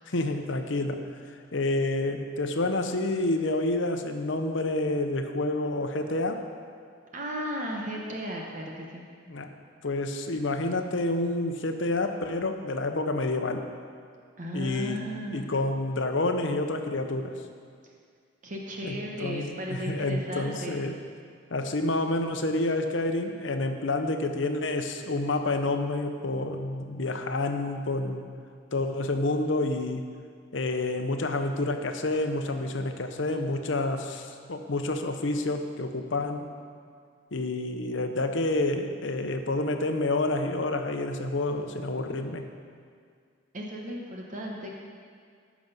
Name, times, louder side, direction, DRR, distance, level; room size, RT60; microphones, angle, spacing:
voice 1, 0.1-1.0 1.3-6.4 9.3-9.5 9.8-13.6 14.5-15.0 15.3-17.3 18.8-21.0 21.5-28.2 28.7-30.1 30.5-36.5 37.3-42.5, left 2 dB, 70° left, 6 dB, 0.9 m, -29 dB
voice 2, 7.1-9.0 14.4-15.5 18.4-20.8 43.5-44.7, equal, 40° right, -1 dB, 1.0 m, -35 dB
14.5 x 6.1 x 5.5 m, 2.1 s
head